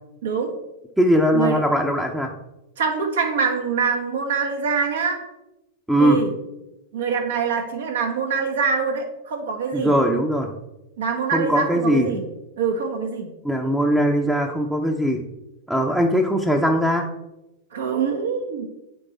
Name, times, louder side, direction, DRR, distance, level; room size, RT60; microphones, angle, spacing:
voice 1, 0.2-0.6 1.3-1.6 2.8-5.2 6.0-6.3 6.9-9.9 11.0-12.2 12.6-13.3 17.7-18.6, right 5 dB, 75° right, 3 dB, 1.3 m, -24 dB
voice 2, 1.0-2.3 5.9-6.3 9.7-10.5 11.3-12.1 13.4-15.2 15.7-17.1, equal, 5° right, 2 dB, 0.6 m, -20 dB
8.8 x 3.2 x 4.1 m, 0.93 s
hypercardioid pair, 105°, 0 cm